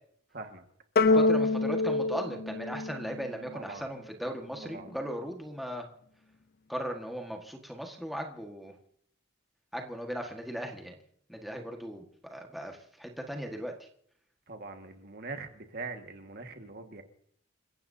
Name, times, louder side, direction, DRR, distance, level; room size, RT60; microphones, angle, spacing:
sound 1, 1.0-3.5, left 3 dB, 50° left, 0.5 m, -26 dB
voice 1, 1.0-5.9 6.7-8.8 9.7-11.0 11.3-13.9, equal, ahead, 1 dB, 1.6 m, -38 dB
voice 2, 3.5-3.8 4.6-4.8 14.5-17.0, right 3 dB, 50° right, 5 dB, 1.7 m, -42 dB
28.5 x 16.5 x 2.8 m, 0.65 s
head